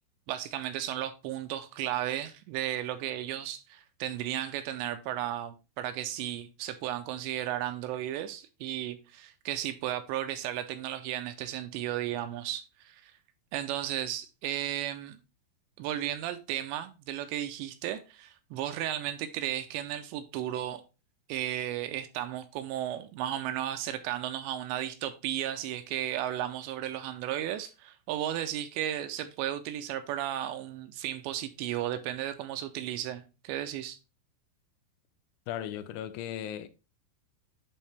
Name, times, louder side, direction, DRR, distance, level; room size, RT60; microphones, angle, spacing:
voice 1, 0.3-13.1 13.5-15.2 15.8-20.8 21.3-34.0, right 12 dB, 80° right, 2.8 m, -34 dB
voice 2, 35.5-36.7, left 10 dB, 90° left, 3.1 m, -36 dB
11.0 x 3.7 x 3.4 m
omnidirectional pair, 5.3 m